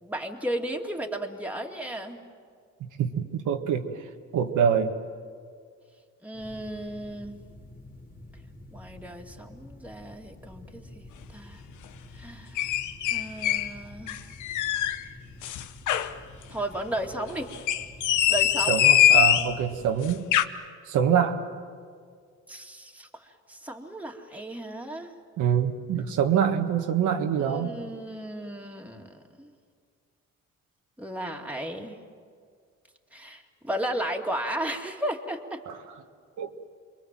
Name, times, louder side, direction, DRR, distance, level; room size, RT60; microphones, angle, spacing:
voice 1, 0.0-2.2 6.2-7.4 8.7-11.6 12.2-12.6 13.1-14.2 16.5-17.5 18.3-18.8 22.5-23.2 23.5-25.1 27.4-29.5 31.0-32.0 33.1-35.6, right 1 dB, 5° right, 1 dB, 2.4 m, -34 dB
voice 2, 3.0-3.9 4.3-4.9 18.7-20.2 20.9-21.4 25.4-27.7 35.7-35.8 36.4-36.5, right 8 dB, 80° right, 4 dB, 1.7 m, -25 dB
sound 1, 6.3-20.0, left 1 dB, 25° left, 2.7 m, -48 dB
sound 2, 12.6-13.7 14.1-15.0 15.4-16.1 17.5-19.5 20.1-20.4, left 11 dB, 80° left, 1.0 m, -22 dB
28.5 x 22.5 x 7.6 m, 2.1 s
cardioid pair, 90°, 30 cm